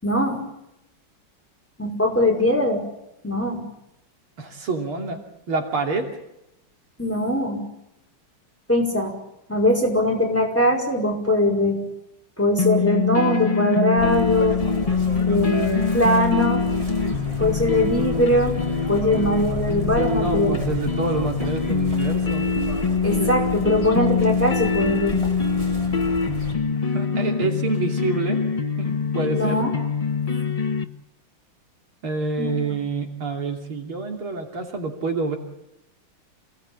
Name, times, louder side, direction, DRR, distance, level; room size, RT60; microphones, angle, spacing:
voice 1, 0.0-0.4 1.8-2.8 3.2-3.6 7.0-7.6 8.7-9.1 9.5-11.8 12.4-14.6 15.3-16.6 17.4-18.6 18.9-20.6 23.0-25.2 29.3-29.7 32.4-32.7, left 1 dB, 5° left, 1 dB, 5.2 m, -21 dB
voice 2, 4.4-5.2 5.5-6.1 20.0-22.4 26.8-28.4 28.8-29.6 32.0-35.4, right 3 dB, 85° right, 3 dB, 3.7 m, -27 dB
sound 1, 12.6-30.8, left 5 dB, 25° left, 0.8 m, -24 dB
Chirp tweet, 14.0-26.5, equal, 15° right, 4.8 m, -32 dB
28.0 x 18.5 x 8.8 m, 0.87 s
omnidirectional pair, 2.3 m